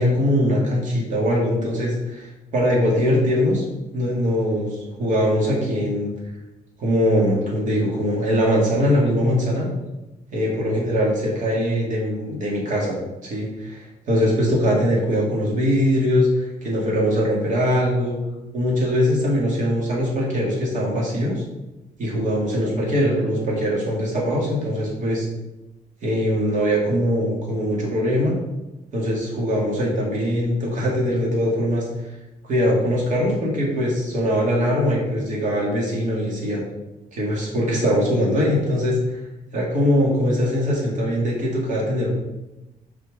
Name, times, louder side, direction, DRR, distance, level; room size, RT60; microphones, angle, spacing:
voice 1, 0.0-3.6 3.9-6.1 6.8-9.7 10.3-13.0 13.2-18.2 18.5-21.4 22.0-25.3 26.0-28.4 28.9-31.9 32.4-36.6 37.1-39.2 39.5-42.1, equal, 60° right, -3 dB, 2.2 m, -21 dB
5.9 x 4.7 x 4.9 m, 1.0 s
cardioid pair, 115°, 15 cm